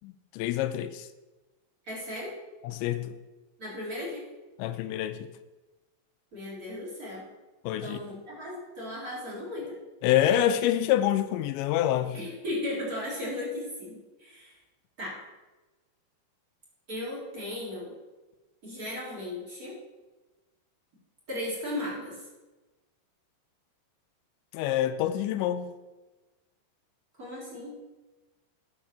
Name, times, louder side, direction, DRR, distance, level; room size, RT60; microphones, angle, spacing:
voice 1, 0.0-1.1 2.6-3.2 4.6-5.3 7.6-8.0 10.0-12.2 24.5-25.7, left 11 dB, 80° left, 10 dB, 2.8 m, -26 dB
voice 2, 1.8-2.3 3.6-4.3 6.3-7.2 7.8-9.8 12.1-14.6 15.0-15.2 16.9-17.9 18.6-19.8 21.3-22.3 27.2-27.8, left 1 dB, 20° right, -5 dB, 3.7 m, -36 dB
9.9 x 6.2 x 7.3 m, 1.1 s
omnidirectional pair, 5.3 m